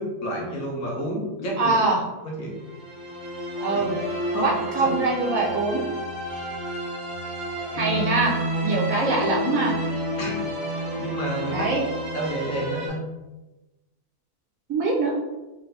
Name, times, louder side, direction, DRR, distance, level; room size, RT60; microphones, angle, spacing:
voice 1, 0.0-1.7 2.2-2.5 4.3-4.5 4.8-4.9 10.2-10.4 11.0-11.7 12.1-13.0, right 1 dB, 70° left, -1 dB, 1.3 m, -30 dB
voice 2, 1.6-2.0 3.6-3.9 4.4-5.8 7.7-8.3 8.6-9.7 11.5-11.8 14.7-15.2, right 3 dB, 70° right, -3 dB, 1.2 m, -23 dB
sound 1, 2.4-12.9, right 1 dB, 40° right, 0.8 m, -30 dB
3.6 x 2.7 x 3.3 m, 1.1 s
omnidirectional pair, 1.5 m